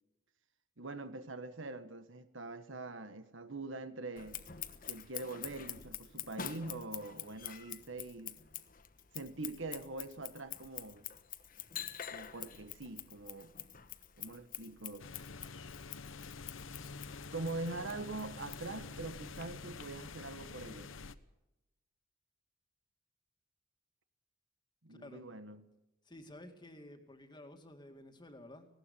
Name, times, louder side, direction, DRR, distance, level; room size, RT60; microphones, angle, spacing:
voice 1, 0.8-4.4 4.9-8.4 9.1-11.0 12.1-13.5 14.2-15.1 17.3-20.9 24.8-25.7, right 2 dB, 70° right, 1.5 m, -43 dB
Scissors, 4.2-19.4, left 10 dB, 45° left, 1.2 m, -47 dB
sound 1, 15.0-21.2, left 4 dB, 75° left, 1.0 m, -47 dB
voice 2, 24.9-25.2 26.0-28.7, left 1 dB, 20° left, 2.3 m, -52 dB
19.5 x 16.5 x 8.5 m
head